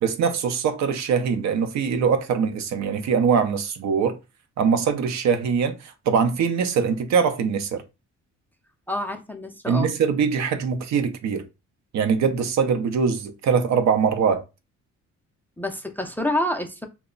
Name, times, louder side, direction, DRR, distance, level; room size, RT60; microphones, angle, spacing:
voice 1, 0.0-4.2 4.6-7.8 9.7-11.4 11.9-14.4, right 6 dB, 65° right, 0.6 m, -22 dB
voice 2, 8.9-9.9 15.6-16.9, left 1 dB, 5° left, 0.4 m, -28 dB
2.1 x 2.1 x 3.7 m
cardioid pair, 90°, 30 cm